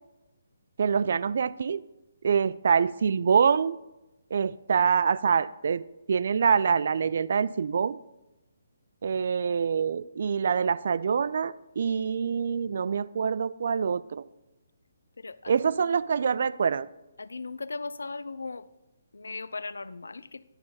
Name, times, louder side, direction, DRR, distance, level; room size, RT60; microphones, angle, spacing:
voice 1, 0.8-1.8 2.2-3.8 4.3-5.8 6.1-8.0 9.0-14.2 15.5-16.9, right 6 dB, 55° right, 0.3 m, -25 dB
voice 2, 15.2-15.5 17.2-18.7 19.1-20.4, left 3 dB, 75° left, 0.4 m, -37 dB
9.6 x 6.5 x 4.1 m
figure-of-eight pair, 140°, 0 cm